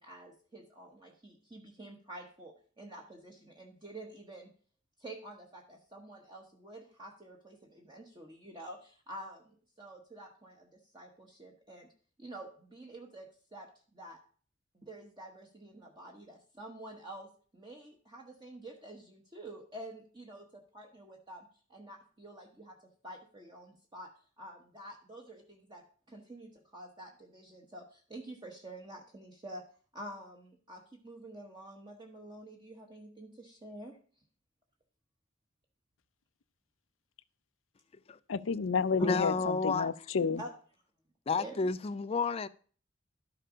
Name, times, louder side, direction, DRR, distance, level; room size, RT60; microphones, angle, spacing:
voice 1, 0.0-4.5 5.0-11.9 12.2-14.2 14.7-21.4 21.7-22.8 23.0-24.1 24.4-29.6 29.9-34.0 39.0-39.2 40.4-40.5 41.4-41.7, right 1 dB, 25° right, 1.3 m, -48 dB
voice 2, 38.3-40.4, left 5 dB, 90° left, 0.5 m, -31 dB
voice 3, 39.0-39.9 40.3-40.4 41.3-42.5, left 4 dB, 30° left, 0.4 m, -30 dB
12.5 x 6.7 x 5.1 m
head